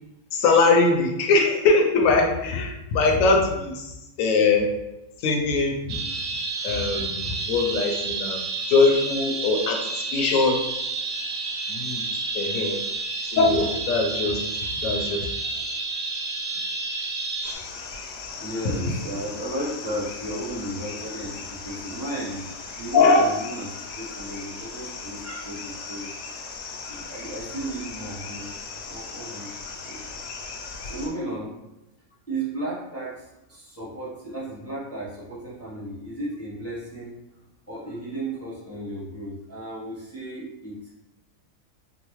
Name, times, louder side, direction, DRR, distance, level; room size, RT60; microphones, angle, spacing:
voice 1, 0.3-3.9 4.2-4.7 5.2-6.0 6.6-8.4 8.7-10.6 11.7-12.0 12.3-12.8 13.3-14.4 14.8-15.3 22.9-23.2, left 3 dB, 70° left, 2 dB, 0.9 m, -21 dB
sound 1, 5.9-17.5, right 3 dB, 90° right, 1.2 m, -30 dB
sound 2, 17.4-31.1, left 4 dB, 85° left, 1.2 m, -38 dB
voice 2, 18.2-22.5 22.8-26.5 26.9-28.6 28.8-29.6 29.8-30.2 30.8-31.5 32.3-37.1 37.7-41.0, right 1 dB, 20° left, -9 dB, 0.4 m, -34 dB
4.0 x 2.0 x 2.9 m, 0.92 s
omnidirectional pair, 1.7 m